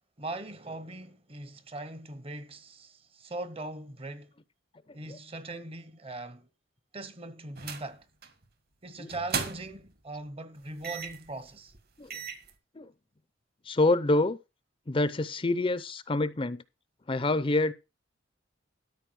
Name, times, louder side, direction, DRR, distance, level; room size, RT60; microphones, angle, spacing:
voice 1, 0.2-4.3 4.9-6.5 6.9-8.1 8.8-11.7, right 2 dB, 30° right, 1.0 m, -40 dB
sound 1, 7.6-7.9 8.2-8.4 9.1-9.9 10.8-11.3 11.7-11.8 12.1-12.5, right 6 dB, 55° right, 1.8 m, -36 dB
voice 2, 13.7-14.4 14.9-16.6 17.1-17.7, left 2 dB, 30° left, 0.6 m, -26 dB
13.0 x 5.3 x 6.3 m
head